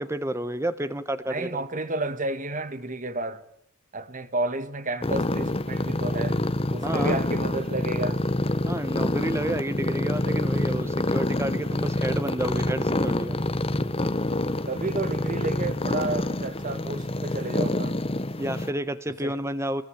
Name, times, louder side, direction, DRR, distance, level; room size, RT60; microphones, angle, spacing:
voice 1, 0.0-1.5 6.8-7.2 8.6-13.4 18.4-19.8, right 1 dB, 10° right, 1.2 m, -30 dB
voice 2, 1.3-3.4 3.9-6.4 6.7-8.2 14.7-18.0 19.2-19.3, right 2 dB, 35° right, 1.7 m, -31 dB
sound 1, 5.0-18.7, left 1 dB, 25° left, 1.1 m, -27 dB
27.0 x 21.5 x 8.8 m
head